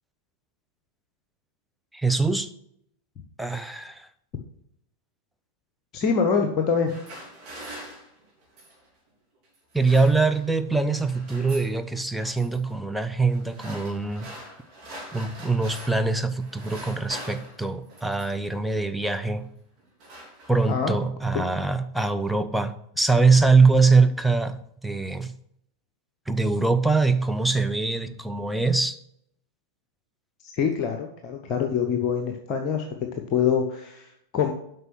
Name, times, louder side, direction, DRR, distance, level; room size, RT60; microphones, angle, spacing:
voice 1, 1.9-2.5 3.4-4.1 9.7-14.5 15.1-19.5 20.5-25.3 26.3-29.0, right 3 dB, ahead, 8 dB, 0.6 m, -23 dB
voice 2, 5.9-7.0 20.7-21.0 21.3-21.4 30.4-34.5, left 6 dB, 35° left, 5 dB, 0.9 m, -25 dB
sound 1, 6.7-8.9 9.5-10.6 10.8-11.8 12.2-12.6 13.3-16.1 16.4-18.5 19.3-19.5 19.8-20.9, right 1 dB, 35° right, 3.4 m, -43 dB
8.0 x 5.3 x 6.1 m, 0.72 s
figure-of-eight pair, 90°, 0 cm